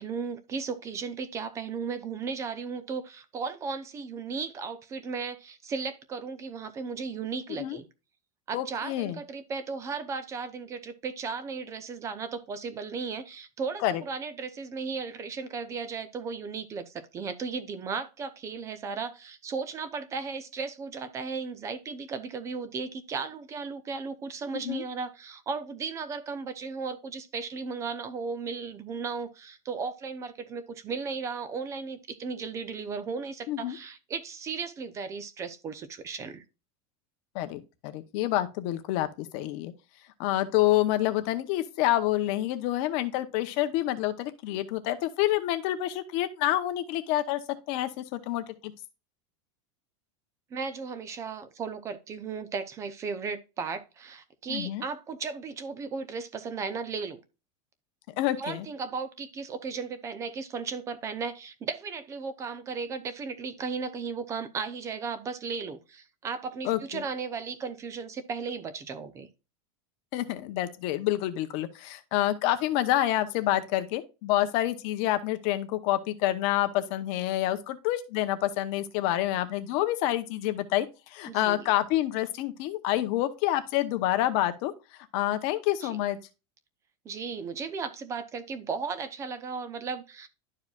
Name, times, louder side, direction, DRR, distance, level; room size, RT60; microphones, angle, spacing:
voice 1, 0.0-7.8 8.5-36.4 50.5-57.2 58.4-69.3 81.3-81.7 85.8-86.0 87.0-90.3, right 5 dB, 20° right, 0.6 m, -35 dB
voice 2, 8.5-9.2 13.8-14.0 24.6-24.8 33.5-33.8 37.3-39.7 40.2-47.4 47.7-48.7 54.5-54.8 58.2-58.7 66.6-67.0 70.1-80.9 81.1-84.7 85.1-86.2, left 14 dB, 45° left, 0.9 m, -28 dB
11.5 x 4.8 x 2.4 m
supercardioid pair, 170°, 15 cm